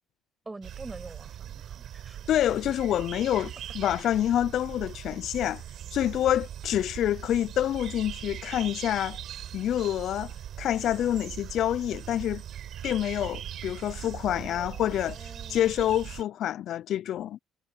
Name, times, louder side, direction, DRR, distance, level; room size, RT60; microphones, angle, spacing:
voice 1, 0.4-2.2 11.0-11.4 14.3-14.8 15.1-15.7, right 2 dB, 15° right, 7.7 m, -46 dB
sound 1, 0.6-16.2, right 10 dB, 55° right, 5.1 m, -40 dB
voice 2, 2.3-3.5 3.8-5.6 5.9-9.2 9.5-12.4 12.8-15.2 15.5-17.4, left 11 dB, 60° left, 0.4 m, -27 dB
cardioid pair, 110°, 0 cm